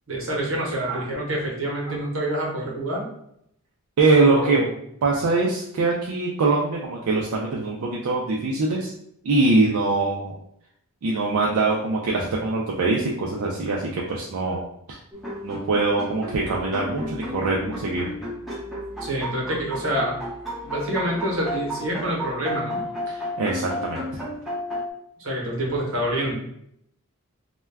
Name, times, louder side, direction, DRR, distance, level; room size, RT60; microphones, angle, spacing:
voice 1, 0.1-3.1 4.2-4.7 14.5-14.6 19.0-20.1 20.6-22.8 25.2-26.4, right 1 dB, 65° right, -2 dB, 0.9 m, -27 dB
voice 2, 4.0-4.6 5.0-8.9 9.2-10.3 11.0-14.7 15.4-18.1 23.1-24.0, right 3 dB, 85° right, -2 dB, 0.4 m, -23 dB
sound 1, 15.1-24.9, left 1 dB, ahead, 0.6 m, -33 dB
2.2 x 2.1 x 3.3 m, 0.73 s
head